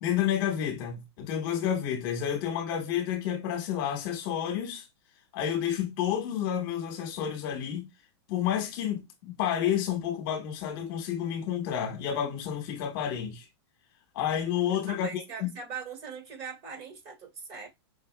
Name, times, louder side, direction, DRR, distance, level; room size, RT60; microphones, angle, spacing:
voice 1, 0.0-4.9 5.3-7.9 8.3-13.5 14.1-15.5, left 9 dB, 50° left, 1.2 m, -30 dB
voice 2, 14.9-17.7, right 6 dB, 35° right, 2.0 m, -41 dB
5.2 x 3.4 x 2.2 m
hypercardioid pair, 140°, 15 cm